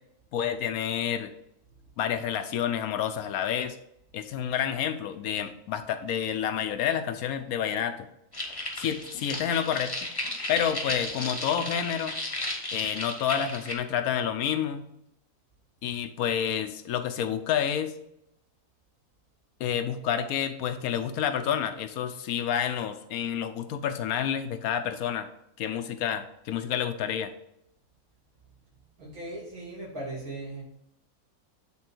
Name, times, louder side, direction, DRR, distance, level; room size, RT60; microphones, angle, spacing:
voice 1, 0.3-1.3 2.0-3.8 4.1-8.1 8.8-9.9 10.5-12.1 12.7-14.9 15.8-17.9 19.6-25.3 25.6-27.3, left 9 dB, 70° left, 9 dB, 1.1 m, -29 dB
sound 1, 8.3-13.7, left 1 dB, 15° left, 1.0 m, -34 dB
voice 2, 29.0-30.6, right 2 dB, 65° right, -4 dB, 3.2 m, -38 dB
8.5 x 3.8 x 4.4 m, 0.79 s
omnidirectional pair, 1.6 m